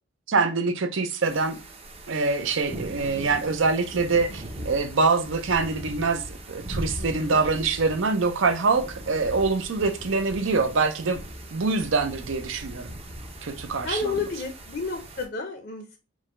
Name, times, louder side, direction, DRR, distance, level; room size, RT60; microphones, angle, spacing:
voice 1, 0.3-1.6 2.1-11.2 11.5-12.9 13.4-14.1, right 4 dB, 70° right, 0.6 m, -24 dB
sound 1, 1.2-15.3, right 1 dB, 30° right, 0.6 m, -39 dB
voice 2, 7.0-7.5 13.8-16.0, left 4 dB, 50° left, 0.6 m, -31 dB
4.8 x 2.2 x 3.6 m
head